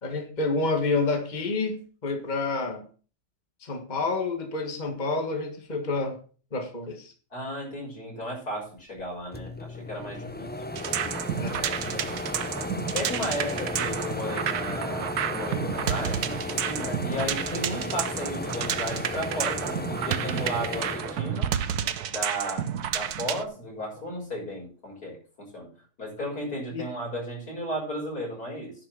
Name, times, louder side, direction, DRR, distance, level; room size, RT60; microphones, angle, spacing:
voice 1, 0.0-2.9 3.6-6.2 6.5-7.1 11.4-11.5 11.9-12.0 26.7-26.8, left 3 dB, 30° left, 5 dB, 1.6 m, -29 dB
voice 2, 7.3-10.5 10.9-11.1 11.5-11.8 12.9-21.5 22.1-25.7 26.0-28.7, equal, 80° left, -2 dB, 6.9 m, -34 dB
sound 1, 9.0-9.1 9.3-21.9 22.4-23.5, left 2 dB, 10° left, 0.4 m, -35 dB
sound 2, 10.7-23.4, right 9 dB, 85° right, 1.4 m, -31 dB
10.5 x 6.1 x 7.5 m, 0.39 s
omnidirectional pair, 1.6 m